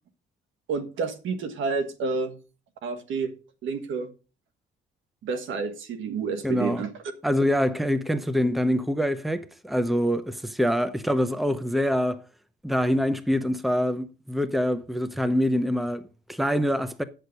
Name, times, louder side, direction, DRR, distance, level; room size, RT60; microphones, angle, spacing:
voice 1, 0.7-2.4 2.8-3.4 3.6-4.1 5.2-6.9, right 4 dB, 80° right, 1.4 m, -29 dB
voice 2, 6.4-6.8 7.2-12.2 12.6-17.0, equal, ahead, 0.8 m, -25 dB
9.5 x 6.5 x 5.2 m
cardioid pair, 90°, 20 cm